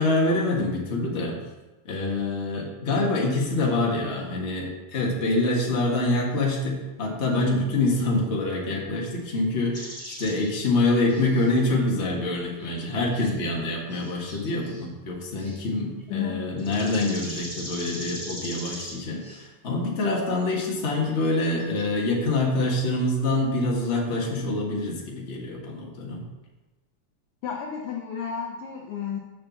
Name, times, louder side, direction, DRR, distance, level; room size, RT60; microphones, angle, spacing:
voice 1, 0.0-1.4 1.8-26.2, left 2 dB, 30° left, -2 dB, 1.3 m, -26 dB
sound 1, 9.7-11.8 12.6-13.7 13.9-14.9 15.4-15.7 16.0-16.1 16.6-19.5 20.2-20.3 20.4-20.7 21.0-21.8, equal, 10° left, 1.0 m, -40 dB
voice 2, 16.1-16.4 27.4-29.2, left 7 dB, 65° left, 0 dB, 1.5 m, -32 dB
6.7 x 5.5 x 7.0 m, 1.1 s
omnidirectional pair, 3.4 m